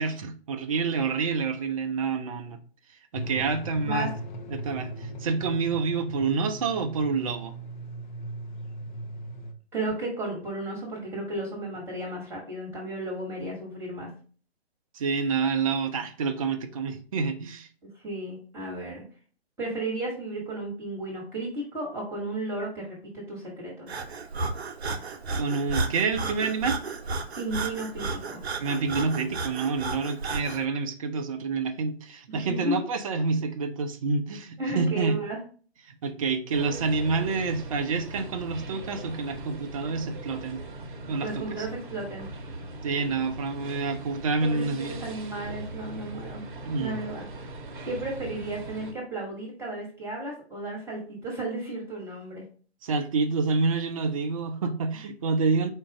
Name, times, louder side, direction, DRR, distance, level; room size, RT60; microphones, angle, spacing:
voice 1, 0.0-2.6 3.1-4.1 4.5-7.5 14.9-17.7 25.3-26.8 28.6-35.2 35.9-40.6 41.1-41.7 42.8-45.0 46.6-47.0 52.8-55.7, right 4 dB, 35° right, 8 dB, 0.5 m, -28 dB
sound 1, 3.1-9.5, equal, 45° left, 0.8 m, -38 dB
voice 2, 3.8-4.1 9.7-14.1 18.0-19.0 19.6-23.9 27.4-28.4 32.3-32.8 34.6-35.4 41.2-42.3 44.4-46.4 46.7-47.3 47.9-52.4, right 2 dB, 10° right, -1 dB, 1.3 m, -34 dB
Breathing, 23.9-30.6, right 3 dB, 75° right, 0.7 m, -33 dB
sound 2, 36.5-48.9, right 1 dB, 50° right, 0.8 m, -40 dB
4.4 x 2.4 x 4.6 m, 0.41 s
figure-of-eight pair, 135°, 33 cm